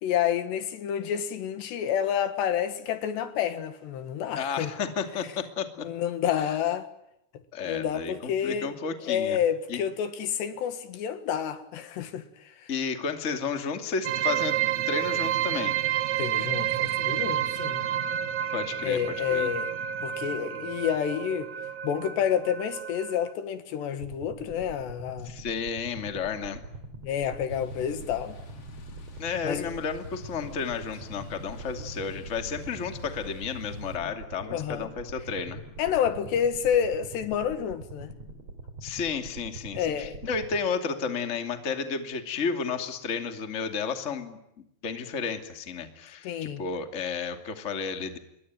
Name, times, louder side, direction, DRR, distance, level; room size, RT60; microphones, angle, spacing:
voice 1, 0.0-4.7 5.8-6.9 7.7-8.7 9.1-12.3 12.6-12.7 16.2-17.9 18.8-19.7 20.0-21.5 21.8-25.3 27.0-28.4 29.4-29.7 34.0-34.1 34.5-34.9 35.8-38.1 39.7-40.2 46.2-46.6, left 9 dB, 75° left, 3.9 m, -29 dB
voice 2, 4.4-5.9 6.4-6.6 7.5-9.4 9.7-9.8 12.7-14.5 14.9-15.8 18.5-19.5 25.2-26.6 29.2-35.6 38.8-44.4 44.8-48.2, left 5 dB, 25° left, 2.0 m, -32 dB
sound 1, 14.0-23.3, right 11 dB, 60° right, 2.0 m, -30 dB
sound 2, 24.0-40.6, right 2 dB, 40° right, 4.9 m, -44 dB
sound 3, 27.5-34.0, right 1 dB, 40° left, 3.1 m, -44 dB
28.5 x 22.5 x 9.3 m
omnidirectional pair, 5.0 m